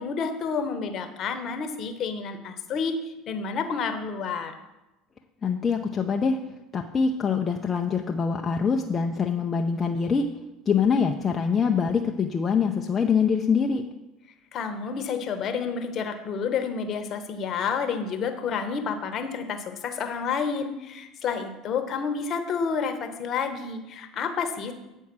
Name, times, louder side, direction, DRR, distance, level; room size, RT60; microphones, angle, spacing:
voice 1, 0.0-4.5 14.5-24.7, left 5 dB, 50° left, 8 dB, 1.0 m, -30 dB
voice 2, 5.4-6.4 6.7-10.3 10.7-13.8, left 6 dB, 30° left, 2 dB, 0.6 m, -24 dB
8.6 x 4.5 x 6.1 m, 0.99 s
hypercardioid pair, 85°, 0 cm